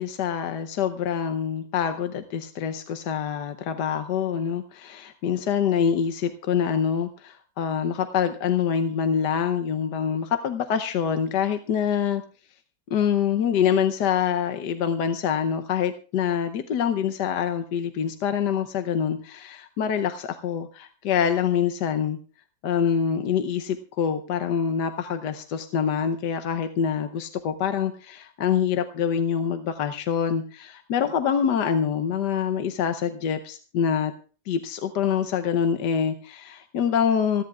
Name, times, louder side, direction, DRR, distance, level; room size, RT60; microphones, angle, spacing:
voice 1, 0.0-12.2 12.9-22.2 22.6-34.1 34.5-37.4, left 8 dB, 80° left, 8 dB, 1.5 m, -25 dB
26.5 x 11.0 x 2.4 m, 0.37 s
omnidirectional pair, 1.8 m